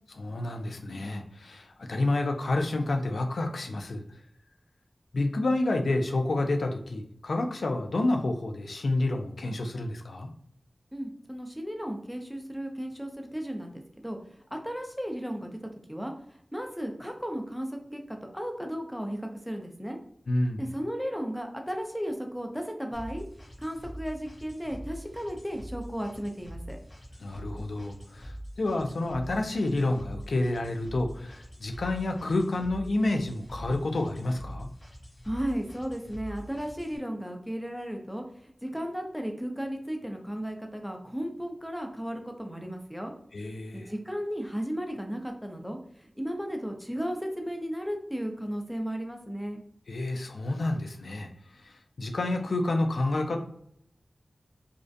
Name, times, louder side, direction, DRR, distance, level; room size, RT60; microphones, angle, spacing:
voice 1, 0.2-4.0 5.1-10.3 20.3-20.7 27.2-34.7 43.3-43.9 49.9-53.4, left 2 dB, 85° left, 4 dB, 0.4 m, -29 dB
voice 2, 10.9-14.2 14.5-16.1 16.5-20.0 20.6-23.2 23.6-26.8 35.3-43.1 43.7-49.6, equal, ahead, 3 dB, 0.5 m, -35 dB
sound 1, 22.9-37.0, equal, 45° left, 0.7 m, -44 dB
2.4 x 2.1 x 2.5 m, 0.68 s
cardioid pair, 50°, 0 cm